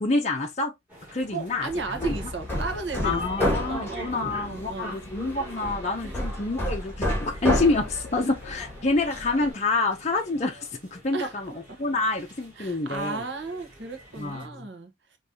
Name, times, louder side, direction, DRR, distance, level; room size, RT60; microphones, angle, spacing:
voice 1, 0.0-0.7 1.1-2.2 3.0-11.5 11.8-13.2 14.2-14.7, left 3 dB, 35° left, 0.6 m, -27 dB
sound 1, 0.9-14.5, equal, 10° right, 2.6 m, -46 dB
voice 2, 1.3-5.0 6.0-6.2 11.1-11.3 11.7-11.8 12.6-14.9, right 3 dB, 70° right, 1.2 m, -34 dB
Hammer, 1.7-9.5, left 1 dB, 10° left, 1.7 m, -31 dB
5.2 x 3.0 x 2.8 m
head